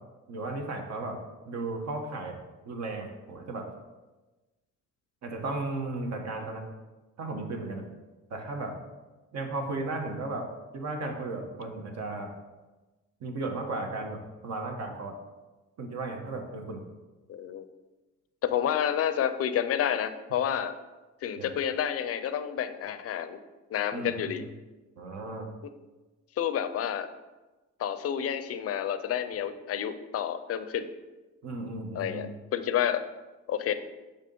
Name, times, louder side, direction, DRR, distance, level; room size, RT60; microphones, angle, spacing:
voice 1, 0.3-1.2 1.5-2.4 2.6-3.6 5.2-6.6 7.2-7.9 8.3-8.7 9.3-10.5 10.7-12.3 13.2-15.1 15.8-16.8 21.4-21.5 23.9-24.4 25.0-25.5 31.4-32.3, right 2 dB, 60° right, 2 dB, 1.1 m, -35 dB
voice 2, 17.3-17.6 18.4-20.7 21.2-23.4 23.7-24.5 26.4-27.1 27.8-30.9 31.9-32.3 32.5-33.0 33.5-33.7, left 9 dB, 50° left, 11 dB, 0.5 m, -29 dB
6.8 x 2.9 x 5.3 m, 1.2 s
cardioid pair, 90°, 30 cm